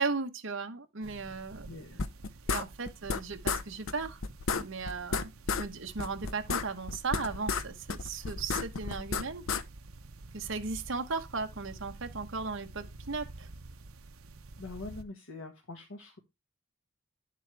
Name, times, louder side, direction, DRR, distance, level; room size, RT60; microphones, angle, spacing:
voice 1, 0.0-1.7 1.9-2.0 2.5-4.2 4.5-5.3 5.6-9.4 10.3-13.5, right 4 dB, 60° right, 1.2 m, -36 dB
sound 1, 1.0-15.0, right 2 dB, 80° right, 0.8 m, -49 dB
voice 2, 1.6-2.0 14.6-16.2, left 3 dB, 90° left, 1.6 m, -44 dB
sound 2, 2.0-3.2 3.5-3.6 3.9-4.0 4.2-5.7 6.0-7.6 7.9-9.6, left 5 dB, 70° left, 0.7 m, -32 dB
10.0 x 7.4 x 3.4 m
head